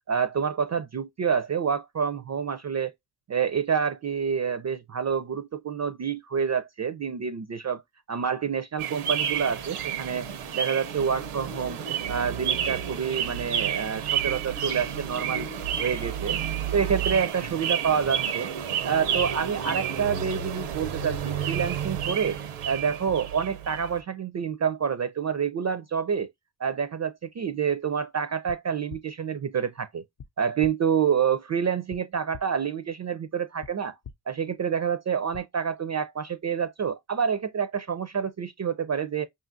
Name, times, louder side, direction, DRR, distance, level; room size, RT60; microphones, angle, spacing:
voice 1, 0.1-2.9 3.3-7.8 8.1-10.3 10.5-11.8 12.1-15.5 15.8-16.4 16.7-18.5 18.8-22.4 22.6-26.3 26.6-30.0 30.4-34.0 34.3-39.3, right 7 dB, 35° right, 0.4 m, -28 dB
sound 1, 8.8-24.0, right 8 dB, 90° right, 0.7 m, -30 dB
sound 2, 28.5-28.6 28.9-29.0 30.2-30.3 30.6-30.7 31.9-32.0 32.3-32.4 33.6-33.7 34.0-34.1 35.3-35.4, left 7 dB, 45° left, 0.6 m, -41 dB
5.4 x 2.5 x 2.5 m
cardioid pair, 55°, 49 cm